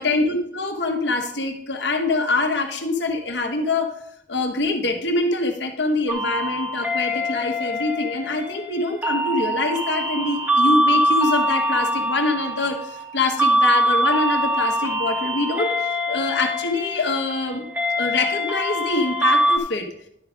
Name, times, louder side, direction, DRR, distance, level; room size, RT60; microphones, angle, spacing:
voice 1, 0.0-3.9 4.3-15.7 16.1-17.6 18.0-19.9, left 2 dB, 75° left, 3 dB, 1.4 m, -24 dB
sound 1, 6.1-19.6, equal, 10° right, 1.0 m, -23 dB
11.5 x 4.8 x 5.1 m, 0.73 s
head